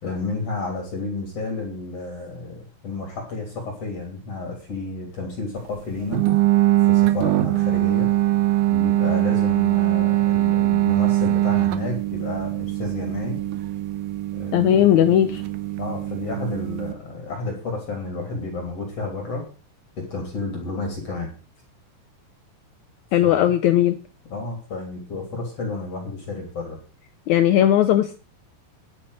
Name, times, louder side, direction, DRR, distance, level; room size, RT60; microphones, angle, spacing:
voice 1, 0.0-2.6 2.8-6.2 6.9-8.1 8.7-13.4 14.3-14.7 15.8-19.4 20.1-21.3 23.2-23.5 24.3-26.8, left 3 dB, 45° left, 3.9 m, -31 dB
sound 1, 6.1-16.9, right 15 dB, 70° right, 2.1 m, -22 dB
voice 2, 14.5-15.4 23.1-24.0 27.3-28.2, left 11 dB, 75° left, 1.7 m, -17 dB
10.5 x 9.9 x 6.5 m
omnidirectional pair, 4.1 m